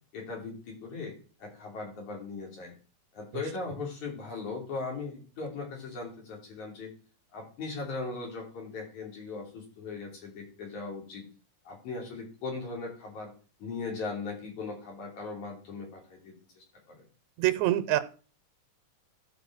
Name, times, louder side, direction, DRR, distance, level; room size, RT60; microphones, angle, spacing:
voice 1, 0.1-1.1 1.4-2.7 3.1-6.9 7.3-11.2 11.7-13.3 13.6-17.0, left 4 dB, 80° left, 0 dB, 4.6 m, -39 dB
voice 2, 17.4-18.0, right 14 dB, 85° right, 10 dB, 2.1 m, -25 dB
13.5 x 5.5 x 6.0 m, 0.39 s
omnidirectional pair, 3.3 m